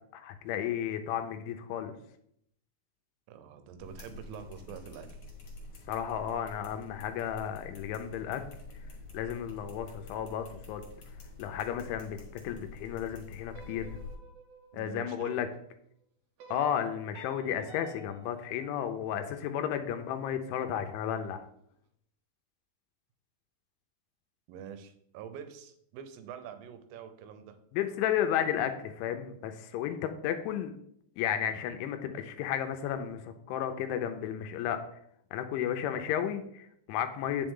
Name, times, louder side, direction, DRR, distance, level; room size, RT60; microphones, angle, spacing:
voice 1, 0.1-1.9 5.9-8.4 9.1-10.8 11.4-13.9 14.7-15.5 16.5-21.5 27.7-30.7 31.2-34.8 35.3-37.5, left 9 dB, 80° left, 7 dB, 2.9 m, -33 dB
voice 2, 3.3-5.3 14.7-15.4 24.5-27.6, right 8 dB, 85° right, 9 dB, 3.4 m, -45 dB
sound 1, 3.8-14.1, left 3 dB, 50° left, 2.0 m, -47 dB
sound 2, 13.5-15.7 16.4-19.5, right 3 dB, 70° right, 2.5 m, -53 dB
8.9 x 6.9 x 3.7 m, 0.72 s
omnidirectional pair, 5.7 m